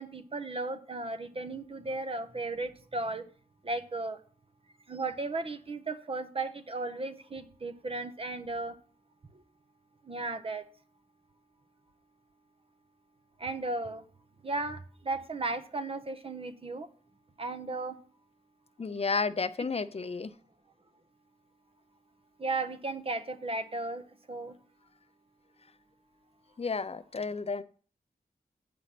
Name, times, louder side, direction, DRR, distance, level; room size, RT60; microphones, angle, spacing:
voice 1, 0.0-3.2 3.6-4.2 4.9-8.7 9.3-9.4 10.0-10.6 13.4-14.0 14.4-16.9 17.4-18.0 22.4-24.6, right 2 dB, 40° right, 11 dB, 0.8 m, -35 dB
voice 2, 18.8-20.3 26.6-27.6, left 4 dB, 40° left, 12 dB, 0.5 m, -32 dB
8.6 x 5.1 x 5.9 m, 0.41 s
wide cardioid pair, 110°, 16 cm